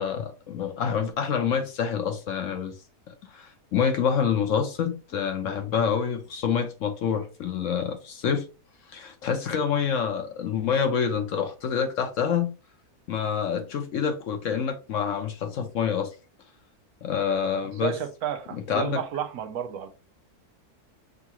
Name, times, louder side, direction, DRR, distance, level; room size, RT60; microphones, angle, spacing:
voice 1, 0.0-2.7 3.1-8.5 8.9-12.5 13.1-16.1 17.0-18.0 18.7-19.0, left 7 dB, 60° left, 1.0 m, -27 dB
voice 2, 17.6-19.9, right 9 dB, 75° right, 1.1 m, -32 dB
6.4 x 2.4 x 2.9 m
omnidirectional pair, 1.6 m